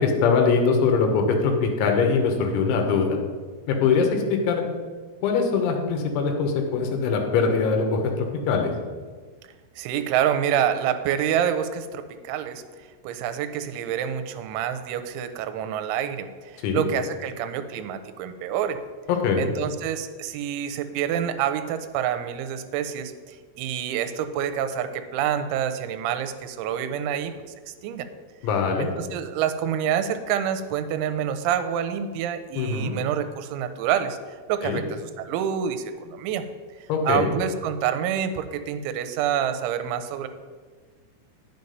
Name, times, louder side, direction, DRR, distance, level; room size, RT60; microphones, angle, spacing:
voice 1, 0.0-3.2 3.7-4.6 5.2-8.7 16.6-16.9 19.1-19.5 28.4-28.9 32.6-33.0 34.6-34.8 36.9-37.3, left 5 dB, 85° left, 2 dB, 3.4 m, -22 dB
voice 2, 9.8-12.6 13.0-16.3 16.5-18.8 19.4-27.5 27.8-28.1 29.0-34.2 34.5-36.4 37.0-40.3, right 9 dB, 85° right, 9 dB, 3.0 m, -27 dB
9.3 x 7.1 x 5.3 m, 1.5 s
omnidirectional pair, 5.4 m